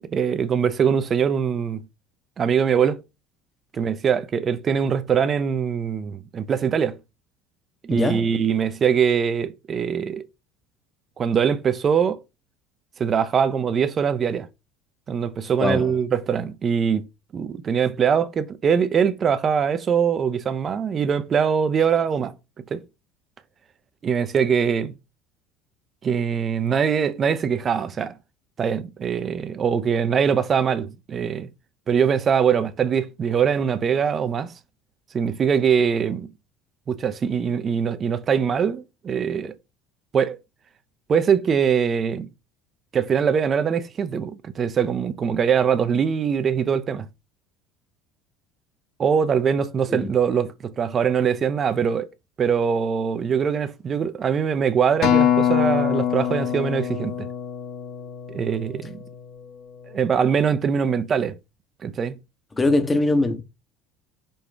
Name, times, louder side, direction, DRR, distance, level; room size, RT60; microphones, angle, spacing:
voice 1, 0.1-1.8 2.4-3.0 3.7-7.0 7.8-10.2 11.2-12.2 13.0-14.5 15.1-17.1 17.3-22.3 22.7-22.8 24.0-24.9 26.0-28.2 28.6-31.5 31.9-34.5 35.1-36.3 36.9-39.5 40.1-40.4 41.1-42.3 42.9-47.1 49.0-52.1 52.4-57.3 58.3-59.0 59.9-61.4 61.8-62.1, right 7 dB, 40° right, 0.5 m, -22 dB
voice 2, 7.9-8.3 15.6-15.9 49.9-50.1 62.6-63.4, left 2 dB, 20° left, 0.8 m, -22 dB
Acoustic guitar, 55.0-59.4 60.1-60.2, left 9 dB, 60° left, 1.1 m, -24 dB
5.4 x 2.3 x 3.3 m
hypercardioid pair, 80°, 0 cm